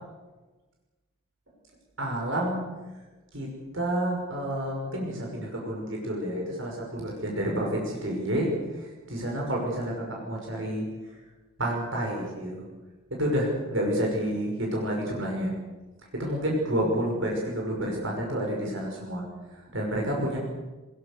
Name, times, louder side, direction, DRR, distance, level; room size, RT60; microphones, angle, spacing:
voice 1, 2.0-2.6 3.3-3.5 3.7-10.9 11.6-12.6 13.1-15.5 16.1-19.2 19.5-20.4, right 1 dB, 60° right, -1 dB, 6.0 m, -29 dB
22.0 x 21.5 x 6.9 m, 1.2 s
head